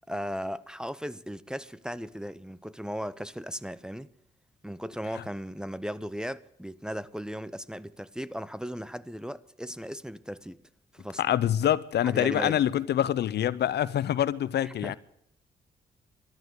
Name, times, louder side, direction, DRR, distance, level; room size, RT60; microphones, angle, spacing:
voice 1, 0.1-4.1 4.6-10.6 10.9-11.2 12.0-12.6 14.6-15.0, equal, 5° right, 0.7 m, -37 dB
voice 2, 11.2-14.9, left 11 dB, 65° left, 0.7 m, -26 dB
13.0 x 12.0 x 8.2 m
supercardioid pair, 60°, 18 cm